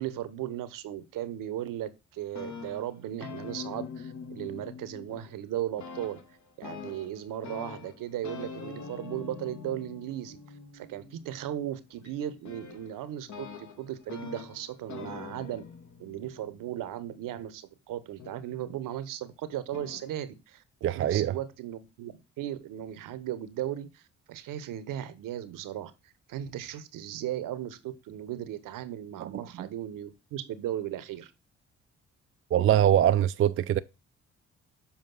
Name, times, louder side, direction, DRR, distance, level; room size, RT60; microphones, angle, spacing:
voice 1, 0.0-6.2 6.6-10.4 10.7-15.6 16.0-20.6 21.0-24.0 24.3-25.9 26.3-31.3, right 12 dB, 65° right, 0.9 m, -36 dB
sound 1, 2.2-5.5 5.8-17.4 18.2-19.0 19.7-20.1, left 5 dB, 55° left, 1.4 m, -44 dB
voice 2, 20.8-21.3 29.2-29.3 29.6-29.7 32.5-33.8, right 11 dB, 40° right, 0.4 m, -23 dB
7.1 x 5.1 x 3.8 m
hypercardioid pair, 40°, 35 cm